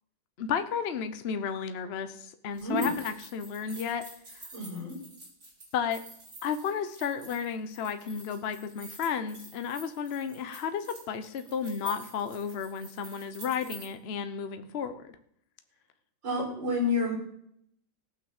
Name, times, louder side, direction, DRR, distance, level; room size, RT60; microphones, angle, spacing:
voice 1, 0.4-4.0 5.7-6.0 6.4-15.2, left 7 dB, 45° left, 9 dB, 0.8 m, -33 dB
sound 1, 2.5-13.9, right 1 dB, 50° right, 4.9 m, -48 dB
voice 2, 2.6-2.9 4.5-5.0 16.2-17.1, left 2 dB, 70° right, -3 dB, 5.7 m, -29 dB
16.5 x 6.0 x 7.2 m, 0.70 s
omnidirectional pair, 2.1 m